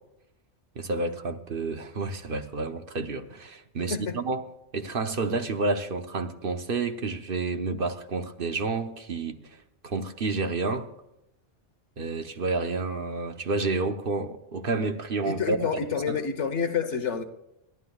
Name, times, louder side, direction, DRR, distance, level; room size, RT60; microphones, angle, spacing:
voice 1, 0.7-4.5 4.7-10.9 12.0-15.7 16.1-16.2, right 3 dB, 50° right, 1.1 m, -30 dB
voice 2, 15.2-17.2, left 6 dB, 75° left, 1.5 m, -28 dB
28.5 x 12.0 x 2.4 m
omnidirectional pair, 1.2 m